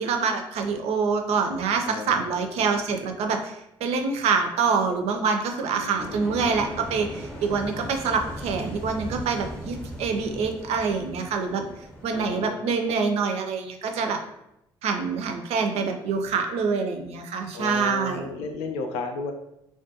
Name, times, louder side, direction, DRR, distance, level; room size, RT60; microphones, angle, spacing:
voice 1, 0.0-11.6 12.0-14.2 14.8-18.3, right 5 dB, 65° right, 5 dB, 0.4 m, -26 dB
voice 2, 1.8-2.7 5.7-6.6 12.1-12.6 17.5-19.3, left 4 dB, 80° left, 4 dB, 0.4 m, -34 dB
sound 1, 6.0-12.5, equal, 10° left, 0.6 m, -38 dB
2.3 x 2.2 x 2.7 m, 0.82 s
hypercardioid pair, 55°, 11 cm